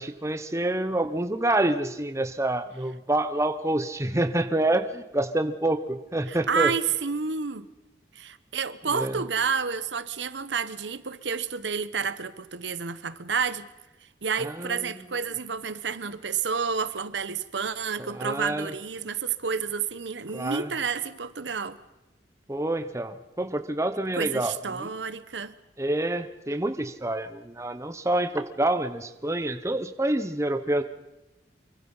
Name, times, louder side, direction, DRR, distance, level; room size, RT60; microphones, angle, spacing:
voice 1, 0.0-6.7 8.9-9.2 14.4-15.1 18.0-18.7 20.3-20.7 22.5-24.9 25.8-30.8, right 1 dB, 15° right, 1.0 m, -27 dB
voice 2, 6.3-7.7 8.1-13.7 14.2-21.8 24.2-25.5, right 6 dB, 85° right, 1.1 m, -30 dB
25.0 x 24.0 x 5.6 m
head